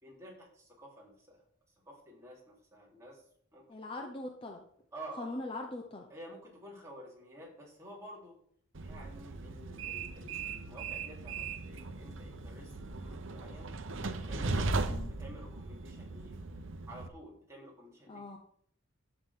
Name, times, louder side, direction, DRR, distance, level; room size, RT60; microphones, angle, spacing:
voice 1, 0.0-1.4 1.9-3.2 3.5-3.6 4.0-4.2 4.9-5.3 6.1-8.4 8.8-13.7 14.1-16.3 16.9-18.2, right 1 dB, 15° right, -4 dB, 3.5 m, -51 dB
voice 2, 3.7-4.6 5.2-6.1 14.9-15.1 18.1-18.4, left 2 dB, 25° left, 3 dB, 0.8 m, -41 dB
Train, 8.7-17.1, right 3 dB, 65° right, 0.8 m, -38 dB
11.5 x 8.0 x 3.7 m, 0.63 s
head